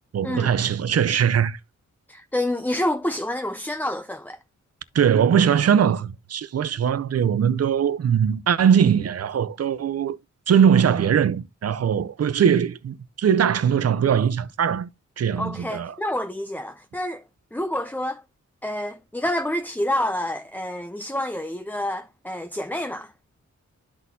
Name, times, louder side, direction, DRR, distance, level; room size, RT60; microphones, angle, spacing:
voice 1, 0.1-1.6 4.9-10.2 10.5-14.9 15.2-16.0, right 8 dB, 55° right, 0.5 m, -21 dB
voice 2, 2.1-4.4 15.4-17.2 17.5-18.2 18.6-23.1, left 1 dB, 5° left, 0.4 m, -28 dB
12.5 x 4.2 x 2.7 m
wide cardioid pair, 165°, 30 cm